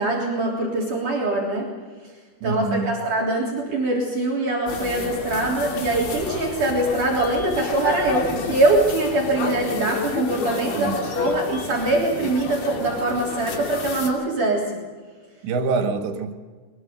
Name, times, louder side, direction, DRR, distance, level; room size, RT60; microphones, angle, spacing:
voice 1, 0.0-1.7 2.4-14.8, right 2 dB, 50° right, -3 dB, 4.8 m, -23 dB
voice 2, 2.4-3.0 10.8-11.1 15.4-16.3, right 4 dB, 85° right, 5 dB, 4.1 m, -25 dB
sound 1, 4.7-14.1, left 5 dB, 80° left, 5.1 m, -31 dB
23.0 x 22.5 x 6.8 m, 1.4 s
omnidirectional pair, 5.0 m